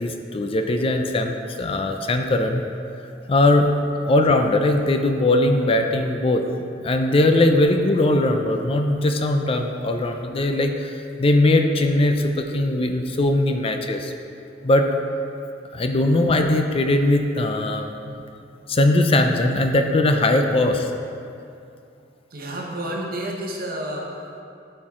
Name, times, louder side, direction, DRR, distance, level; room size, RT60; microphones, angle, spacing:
voice 1, 0.0-2.6 3.3-3.7 4.1-6.4 6.8-14.1 14.6-14.9 15.7-18.2 18.7-20.9, left 2 dB, 30° left, 5 dB, 0.4 m, -20 dB
voice 2, 22.3-24.4, right 1 dB, 55° right, -1 dB, 1.2 m, -31 dB
12.5 x 4.5 x 3.7 m, 2.5 s
head